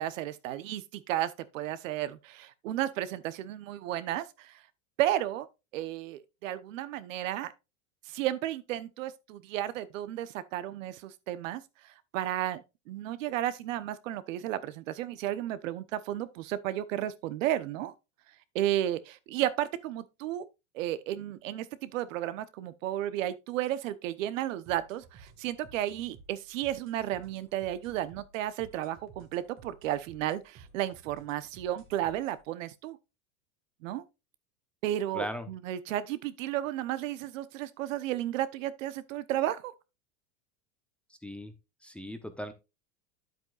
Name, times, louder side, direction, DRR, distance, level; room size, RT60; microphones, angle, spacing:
voice 1, 0.0-4.6 5.0-5.5 5.7-7.5 8.1-17.9 18.5-20.5 20.7-33.0 33.8-34.0 34.8-39.7, right 13 dB, 75° right, 1.0 m, -33 dB
sound 1, 24.7-32.4, right 4 dB, 30° right, 1.5 m, -55 dB
voice 2, 35.1-35.5 41.2-41.5 41.8-42.5, equal, 5° left, 0.8 m, -38 dB
9.2 x 8.0 x 2.4 m
supercardioid pair, 135°, 39 cm